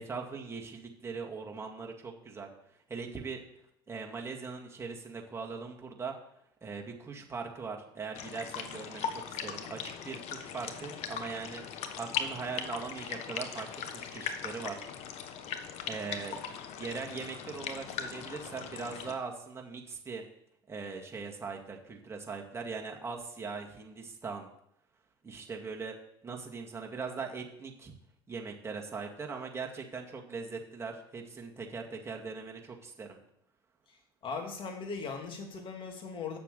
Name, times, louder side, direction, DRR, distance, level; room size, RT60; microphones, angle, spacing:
voice 1, 0.0-2.5 2.9-3.4 3.9-6.1 6.6-11.6 12.0-14.9 15.9-20.2 20.7-24.5 25.2-26.0 26.2-27.9 28.3-33.2, right 4 dB, 20° right, 0 dB, 2.0 m, -40 dB
sound 1, 8.1-19.1, left 7 dB, 60° left, 1.1 m, -39 dB
voice 2, 34.2-36.4, left 5 dB, 45° left, 3 dB, 2.4 m, -38 dB
7.8 x 6.7 x 6.7 m, 0.74 s
hypercardioid pair, 75°, 12 cm